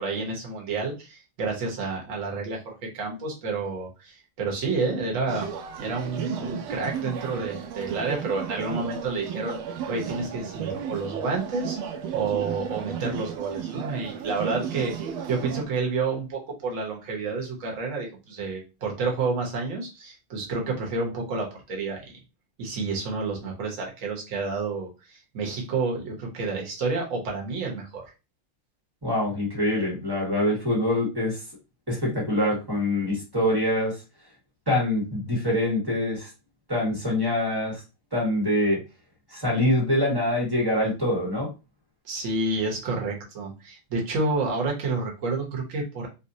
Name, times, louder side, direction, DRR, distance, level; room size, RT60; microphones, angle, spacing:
voice 1, 0.0-5.5 5.8-9.6 9.9-11.8 12.1-22.2 22.6-28.0 42.0-46.1, right 3 dB, 45° right, -1 dB, 1.1 m, -29 dB
sound 1, 5.3-15.6, right 8 dB, 85° right, 1.5 m, -34 dB
voice 2, 29.0-31.4 31.9-34.0 34.7-36.3 36.7-37.8 38.1-38.8 39.3-41.5, left 1 dB, 15° right, -4 dB, 0.8 m, -24 dB
4.0 x 2.2 x 2.6 m, 0.29 s
omnidirectional pair, 2.4 m